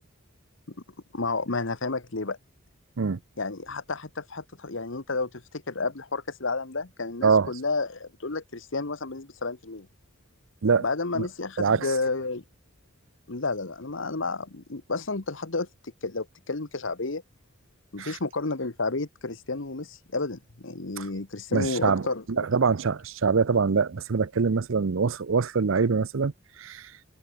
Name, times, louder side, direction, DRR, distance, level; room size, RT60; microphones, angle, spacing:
voice 1, 1.1-2.4 3.4-9.9 10.8-12.4 13.3-17.2 17.9-22.2 22.5-22.6, left 3 dB, 65° left, 1.4 m, -31 dB
voice 2, 21.5-26.3 26.6-26.9, right 5 dB, 70° right, 0.6 m, -24 dB
head